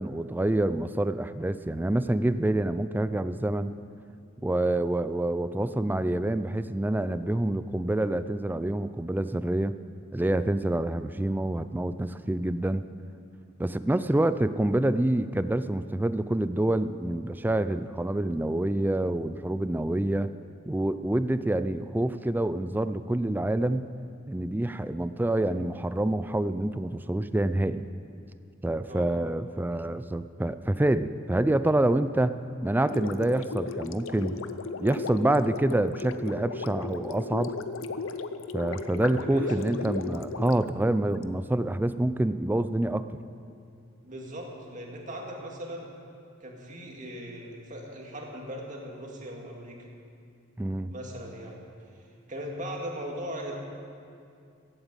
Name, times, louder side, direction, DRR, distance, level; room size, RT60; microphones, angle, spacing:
voice 1, 0.0-3.7 4.4-9.7 10.1-12.8 13.6-20.3 20.7-23.9 24.3-27.9 28.6-32.4 32.6-34.4 34.8-37.5 38.5-43.1 50.6-50.9, right 1 dB, 10° right, 13 dB, 0.3 m, -27 dB
Gurgling, 32.9-41.2, left 4 dB, 80° left, 0.6 m, -36 dB
voice 2, 39.0-39.7 44.0-45.9 46.4-49.9 50.9-51.6 51.9-53.5, equal, 40° right, 0 dB, 2.1 m, -39 dB
14.5 x 8.8 x 8.0 m, 2.4 s
head